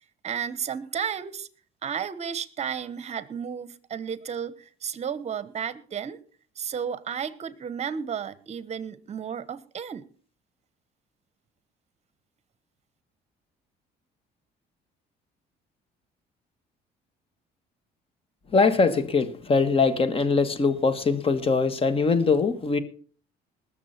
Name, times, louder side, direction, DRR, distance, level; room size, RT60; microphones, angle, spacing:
voice 1, 0.2-1.5 1.8-6.2 6.6-10.1, right 7 dB, 40° right, 16 dB, 1.2 m, -33 dB
voice 2, 18.5-22.8, left 4 dB, 35° left, 13 dB, 1.7 m, -22 dB
20.0 x 7.2 x 5.9 m, 0.43 s
cardioid pair, 110°, 17 cm